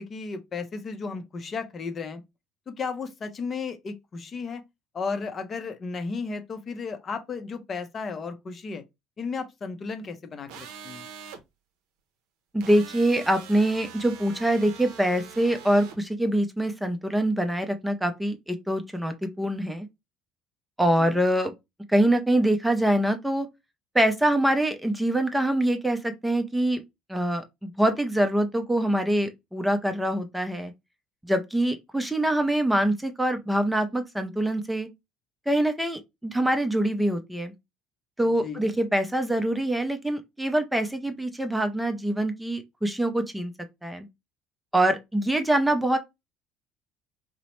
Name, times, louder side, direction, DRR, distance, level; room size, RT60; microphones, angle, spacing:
voice 1, 0.0-2.2 2.7-4.6 4.9-8.8 9.2-11.1 21.0-21.1 38.4-38.6, left 4 dB, 40° left, 0.6 m, -34 dB
sound 1, 10.5-11.4 12.6-16.0, right 7 dB, 70° right, 0.5 m, -43 dB
voice 2, 12.5-19.9 20.8-21.5 21.9-23.5 23.9-26.8 27.1-30.7 31.2-34.9 35.5-37.5 38.2-43.5 43.8-44.1 44.7-46.0, right 1 dB, 5° right, 0.5 m, -24 dB
2.9 x 2.0 x 3.0 m
hypercardioid pair, 75°, 0 cm